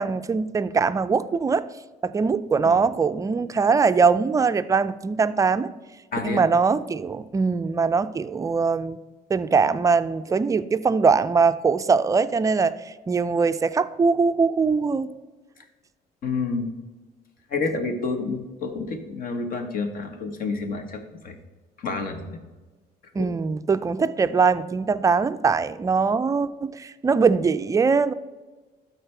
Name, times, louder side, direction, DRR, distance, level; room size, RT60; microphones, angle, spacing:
voice 1, 0.0-1.6 2.0-5.7 6.2-9.0 9.3-12.7 13.1-15.1 23.2-28.1, right 5 dB, 20° right, 11 dB, 0.3 m, -22 dB
voice 2, 6.1-6.5 16.2-16.7 17.5-21.3 21.8-22.4 23.2-23.3, left 4 dB, 60° left, 6 dB, 1.3 m, -29 dB
12.5 x 4.3 x 3.3 m, 1.2 s
cardioid pair, 110°, 17 cm